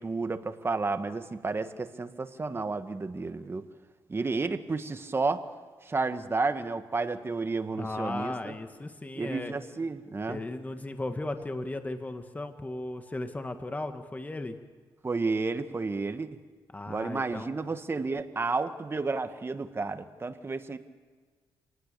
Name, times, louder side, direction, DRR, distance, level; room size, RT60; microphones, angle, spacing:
voice 1, 0.0-3.6 4.1-5.4 5.8-8.5 9.2-10.4 15.0-16.4 16.9-20.8, right 3 dB, 30° right, 9 dB, 1.6 m, -31 dB
voice 2, 7.8-9.5 10.3-14.6 16.7-17.6, left 2 dB, 20° left, 7 dB, 1.8 m, -36 dB
27.5 x 19.0 x 6.9 m, 1.5 s
cardioid pair, 90°, 9 cm